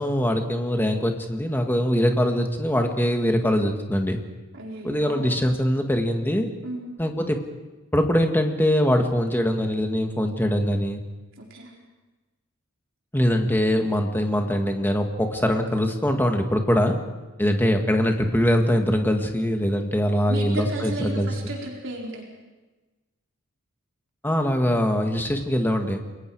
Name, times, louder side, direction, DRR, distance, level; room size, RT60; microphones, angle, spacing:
voice 1, 0.0-4.2 4.8-6.5 7.0-7.4 7.9-11.0 13.1-17.0 17.4-21.3 24.2-26.0, equal, 10° left, 4 dB, 1.9 m, -22 dB
voice 2, 4.5-5.3 6.6-6.9 11.4-11.7 20.2-22.2, right 1 dB, 60° right, -2 dB, 4.4 m, -33 dB
29.0 x 22.0 x 4.8 m, 1.2 s
head